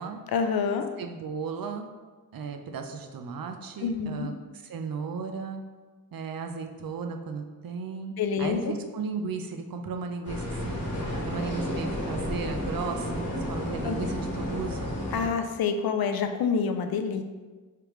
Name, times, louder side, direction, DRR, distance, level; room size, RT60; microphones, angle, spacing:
voice 1, 0.3-0.9 3.8-4.3 8.2-8.7 13.8-14.0 15.1-17.2, left 6 dB, 90° left, 7 dB, 0.5 m, -27 dB
voice 2, 1.0-1.9 2.3-5.6 6.1-10.9 11.3-15.0, right 5 dB, 75° right, 5 dB, 0.5 m, -35 dB
sound 1, 10.2-15.3, left 1 dB, 55° left, 1.4 m, -31 dB
4.9 x 3.3 x 3.1 m, 1.3 s
wide cardioid pair, 80°, 35 cm